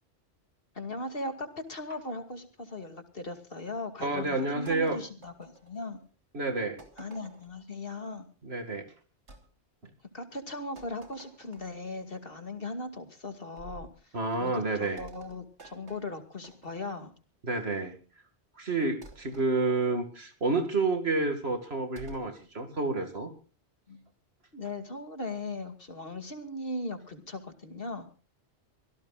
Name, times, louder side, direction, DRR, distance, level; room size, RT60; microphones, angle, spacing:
voice 1, 0.7-6.0 7.0-8.3 10.1-14.2 14.4-17.1 23.9-24.0 24.5-28.1, left 2 dB, 55° left, 7 dB, 2.6 m, -38 dB
voice 2, 4.0-5.0 6.3-6.8 8.4-8.9 14.1-15.0 17.4-18.0 18.6-23.3, right 3 dB, 65° right, 6 dB, 2.4 m, -29 dB
sound 1, 4.7-6.1 6.8-7.6 9.3-9.5 10.8-11.9 13.6-14.0 15.0-17.1 19.0-19.5 22.0-22.3, right 2 dB, 90° right, 3.2 m, -52 dB
25.0 x 17.0 x 2.4 m, 0.36 s
omnidirectional pair, 1.1 m